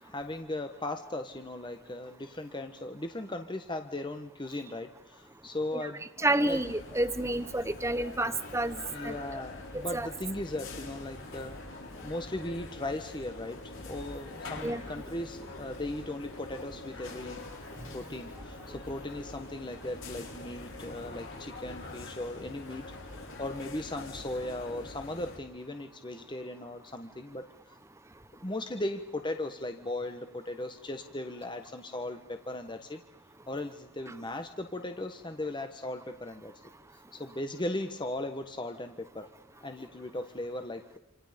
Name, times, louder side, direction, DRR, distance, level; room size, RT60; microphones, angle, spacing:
voice 1, 0.0-6.6 8.9-11.8 12.0-17.4 17.9-27.5 28.4-33.0 33.5-36.5 37.1-39.3 39.6-41.0, left 1 dB, 20° left, 7 dB, 1.3 m, -38 dB
voice 2, 6.2-8.8 9.0-9.2 9.7-10.1 14.6-14.8, right 1 dB, 15° right, 12 dB, 1.2 m, -29 dB
sound 1, 6.5-25.4, left 2 dB, 65° left, 6.7 m, -44 dB
28.0 x 28.0 x 5.3 m, 0.91 s
head